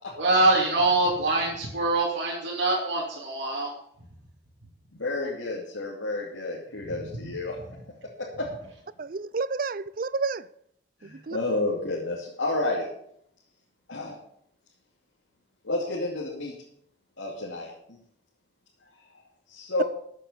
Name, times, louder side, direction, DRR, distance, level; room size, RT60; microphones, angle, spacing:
voice 1, 0.2-3.7 6.9-7.0, right 2 dB, 75° right, -5 dB, 2.9 m, -24 dB
voice 2, 4.9-7.6 8.4-8.5 11.0-12.9 13.9-14.2 15.6-16.5 17.2-18.0 19.5-19.8, left 2 dB, 90° left, -4 dB, 2.7 m, -30 dB
voice 3, 9.0-10.4 11.0-11.4, right 4 dB, 45° right, 18 dB, 0.4 m, -30 dB
13.5 x 8.3 x 5.6 m, 0.69 s
head